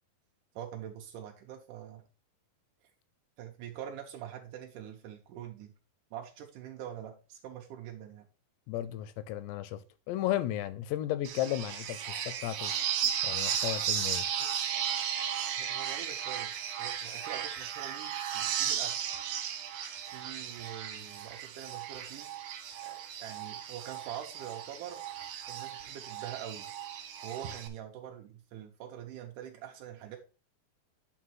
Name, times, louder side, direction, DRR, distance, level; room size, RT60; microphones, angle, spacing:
voice 1, 0.6-2.0 2.8-2.9 3.4-5.7 6.1-8.3 14.4-14.7 15.6-16.5 16.8-19.0 20.1-22.3 22.8-25.0 25.5-26.7 27.2-30.2, right 10 dB, 85° right, 1.8 m, -44 dB
voice 2, 8.7-9.8 10.1-12.7 13.2-14.2, left 13 dB, 85° left, 2.8 m, -34 dB
sound 1, 11.2-27.7, right 9 dB, 70° right, 2.4 m, -35 dB
8.8 x 4.0 x 4.5 m
omnidirectional pair, 4.8 m